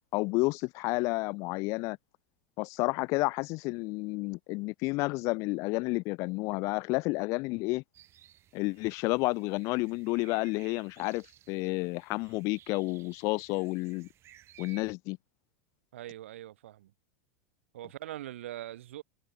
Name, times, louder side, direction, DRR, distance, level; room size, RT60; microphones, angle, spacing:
voice 1, 0.1-2.0 2.6-7.8 8.5-14.1 14.6-15.2, left 25 dB, 45° left, 0.7 m, -31 dB
sound 1, 7.9-14.9, right 13 dB, 35° right, 6.2 m, -58 dB
voice 2, 15.9-16.9 17.7-19.0, right 13 dB, 65° right, 1.2 m, -42 dB
figure-of-eight pair, 85°, 7 cm